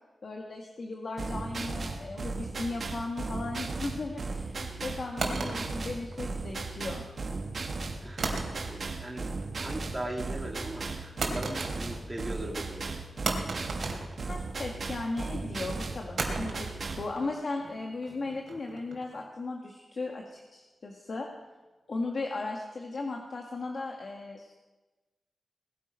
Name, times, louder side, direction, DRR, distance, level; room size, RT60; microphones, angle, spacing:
voice 1, 0.2-7.1 14.3-16.7 17.0-21.3 21.9-24.5, left 3 dB, 45° left, 1 dB, 1.5 m, -36 dB
sound 1, 1.2-17.1, right 3 dB, 50° right, 1.6 m, -36 dB
sound 2, 5.2-6.6 8.2-9.0 9.3-9.8 11.2-12.2 12.4-12.5 13.3-14.8 16.2-19.2, right 3 dB, 70° right, 2.9 m, -36 dB
voice 2, 8.0-12.8, right 1 dB, 10° right, -2 dB, 2.2 m, -39 dB
20.0 x 13.0 x 5.3 m, 1.2 s
wide cardioid pair, 165°, 0 cm